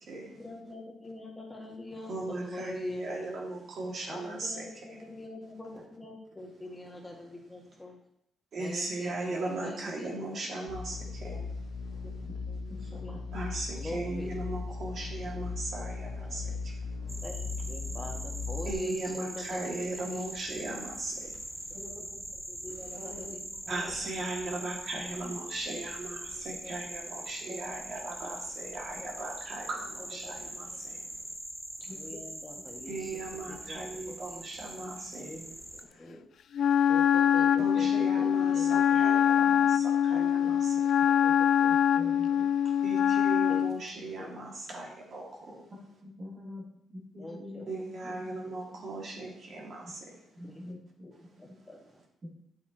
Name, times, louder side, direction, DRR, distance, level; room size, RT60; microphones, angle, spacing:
voice 1, 0.2-3.4 4.1-8.0 8.6-10.4 11.3-11.5 12.5-13.2 13.7-14.6 15.2-15.4 16.2-16.4 17.2-20.2 22.5-23.4 23.9-24.0 25.0-25.3 26.3-26.7 27.2-27.3 29.0-29.1 30.0-30.5 31.0-31.1 31.9-34.4 35.1-36.2 36.9-39.1 40.1-40.6 41.0-42.4 43.4-44.4 45.5-45.6 47.2-47.7 48.4-48.6 50.4-50.6 51.0-51.1 51.4-52.0, left 2 dB, 15° left, 0 dB, 1.9 m, -45 dB
voice 2, 2.1-4.6 8.5-11.4 13.3-16.7 18.7-21.3 23.7-31.0 32.9-35.3 37.6-40.7 42.8-45.6 47.7-49.9, right 2 dB, 55° right, -1 dB, 2.5 m, -38 dB
sound 1, 10.7-18.7, left 4 dB, 80° left, 1.8 m, -38 dB
voice 3, 12.7-13.2 21.7-22.4 22.9-24.1 27.5-27.9 28.9-29.0 31.9-32.2 41.3-41.4 41.7-42.5 45.7-48.4 48.7-48.8 49.2-49.3 49.8-49.9 50.3-51.6 52.2-52.4, left 1 dB, 40° right, -3 dB, 2.8 m, -46 dB
sound 2, 17.1-35.8, right 1 dB, 20° right, 0.8 m, -42 dB
Wind instrument woodwind instrument, 36.6-43.8, left 9 dB, 65° left, 0.3 m, -24 dB
9.6 x 7.2 x 3.1 m, 0.74 s
cardioid pair, 90°, 0 cm